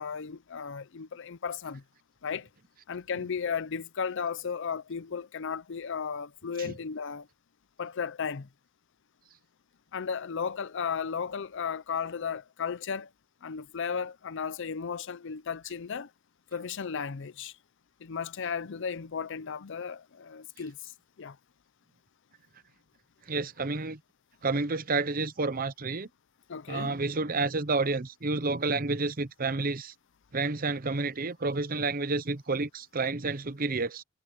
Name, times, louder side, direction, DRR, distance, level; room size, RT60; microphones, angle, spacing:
voice 1, 0.0-1.8 2.2-2.5 2.9-7.3 7.8-8.5 9.9-13.1 13.4-16.1 16.5-17.5 18.0-20.9 21.2-21.4 26.5-27.0, left 6 dB, 60° left, 0.6 m, -35 dB
voice 2, 23.3-24.0 24.4-26.1 26.7-29.9 30.3-34.0, right 3 dB, 45° right, 0.9 m, -30 dB
head